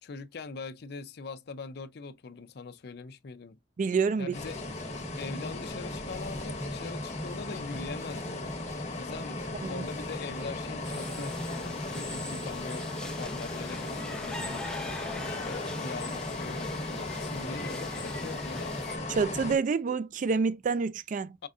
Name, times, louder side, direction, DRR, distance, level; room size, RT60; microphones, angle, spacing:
voice 1, 0.0-3.6 4.2-4.6 5.2-8.5 9.0-14.6 15.2-18.8 21.4-21.5, left 4 dB, 60° left, 0.5 m, -42 dB
voice 2, 3.8-4.3 9.6-9.8 19.1-21.4, right 5 dB, 45° right, 0.3 m, -28 dB
sound 1, 4.3-19.6, left 2 dB, 40° left, 1.2 m, -36 dB
sound 2, 4.5-12.2, right 2 dB, 15° right, 1.9 m, -51 dB
sound 3, 10.8-19.0, left 1 dB, 5° left, 0.7 m, -42 dB
5.4 x 3.5 x 2.4 m
head